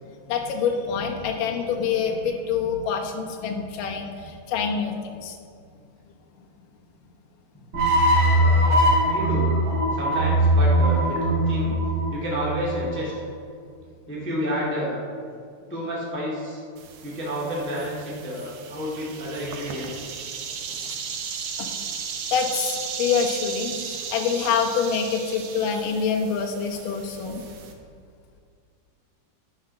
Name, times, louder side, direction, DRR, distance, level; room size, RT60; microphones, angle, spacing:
voice 1, 0.3-5.4 21.6-21.7 22.3-27.4, left 6 dB, 70° left, 1 dB, 2.5 m, -26 dB
sound 1, 7.7-13.0, right 1 dB, 50° right, 1.8 m, -20 dB
voice 2, 8.3-8.7 9.0-9.5 9.9-11.7 12.1-13.1 14.1-15.0 15.7-16.6 17.0-20.1, equal, 15° left, -5 dB, 0.4 m, -30 dB
sound 2, 16.8-27.7, right 6 dB, 90° right, 1.4 m, -35 dB
10.0 x 6.1 x 6.1 m, 2.2 s
omnidirectional pair, 4.2 m